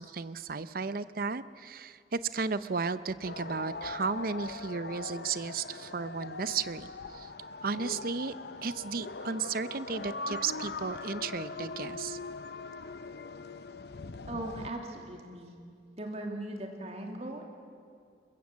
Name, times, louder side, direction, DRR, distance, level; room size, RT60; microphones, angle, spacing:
voice 1, 0.0-7.3 7.6-8.3 8.6-12.2, right 5 dB, 50° right, 14 dB, 0.6 m, -34 dB
sound 1, 3.2-14.7, left 3 dB, 60° left, 0.7 m, -41 dB
voice 2, 14.3-15.6 16.0-17.5, right 1 dB, 35° right, 2 dB, 2.6 m, -39 dB
22.0 x 22.0 x 7.4 m, 2.3 s
head